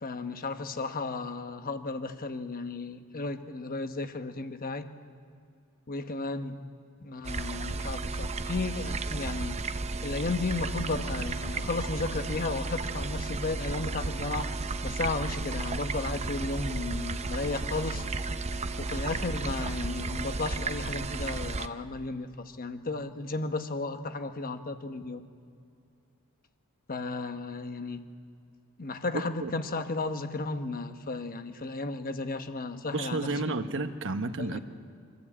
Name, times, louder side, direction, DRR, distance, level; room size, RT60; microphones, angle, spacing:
voice 1, 0.0-4.9 5.9-6.6 7.0-9.6 10.0-14.5 14.8-18.0 18.8-25.2 26.9-28.0 28.8-33.7 34.4-34.6, left 3 dB, 40° left, 8 dB, 1.1 m, -34 dB
sound 1, 7.2-21.7, right 3 dB, 30° right, 0.6 m, -33 dB
voice 2, 32.9-34.6, right 2 dB, 60° right, 8 dB, 1.1 m, -31 dB
25.0 x 14.0 x 8.6 m, 2.4 s
head